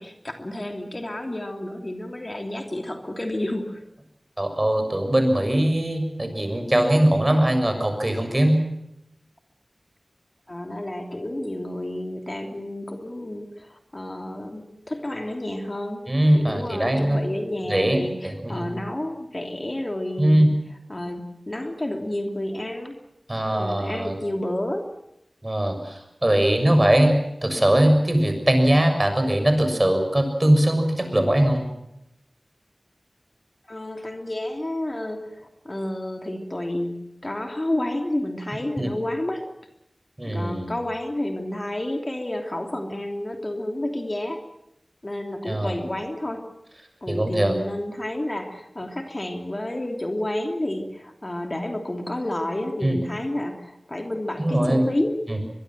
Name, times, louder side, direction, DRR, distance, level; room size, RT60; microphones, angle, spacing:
voice 1, 0.0-3.8 10.5-16.1 16.3-20.5 20.9-22.9 23.5-24.8 33.7-39.4 40.2-44.4 45.0-46.5 47.0-55.2, left 1 dB, 35° left, 4 dB, 3.0 m, -30 dB
voice 2, 4.4-8.6 16.1-17.2 17.7-18.0 18.2-18.7 20.2-20.5 23.3-24.1 25.4-27.1 27.4-31.6 38.8-38.9 40.2-40.7 45.5-45.8 47.1-47.6 52.8-53.0 54.4-54.8 55.3-55.4, right 1 dB, 30° right, 6 dB, 6.9 m, -21 dB
23.0 x 22.5 x 7.7 m, 0.84 s
wide cardioid pair, 45°, 0 cm